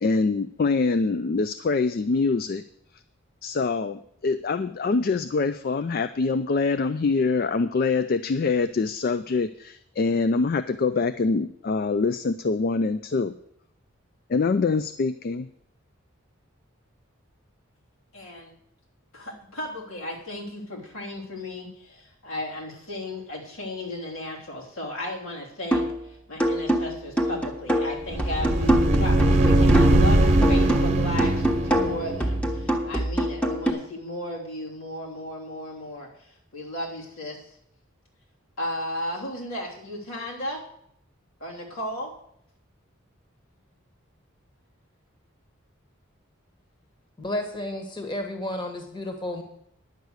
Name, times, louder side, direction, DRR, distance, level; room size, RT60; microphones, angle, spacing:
voice 1, 0.0-2.6 3.4-13.3 14.3-15.5, left 4 dB, 45° left, 12 dB, 0.4 m, -24 dB
voice 2, 18.1-18.5 19.1-37.5 38.6-40.6 41.4-42.1, left 1 dB, 80° left, -2 dB, 3.2 m, -35 dB
sound 1, 25.7-26.0 26.4-30.1 30.4-33.7, equal, 5° left, 1.1 m, -25 dB
sound 2, 28.1-32.7, right 1 dB, 35° right, 1.2 m, -21 dB
voice 3, 47.2-49.4, left 1 dB, 20° left, 5 dB, 1.4 m, -32 dB
10.5 x 8.1 x 6.4 m, 0.71 s
head